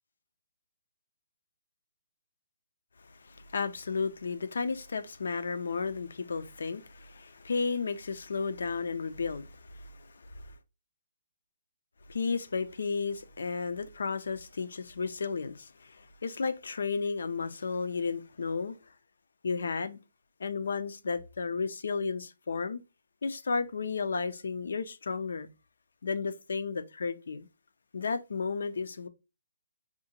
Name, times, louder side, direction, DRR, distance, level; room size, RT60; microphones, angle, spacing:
voice 1, 3.0-10.5 12.1-18.8 19.4-20.0 20.4-22.8 23.2-25.5 26.0-27.5 27.9-29.1, left 4 dB, 70° left, 0.4 m, -33 dB
3.7 x 2.1 x 2.8 m
figure-of-eight pair, 140°, 0 cm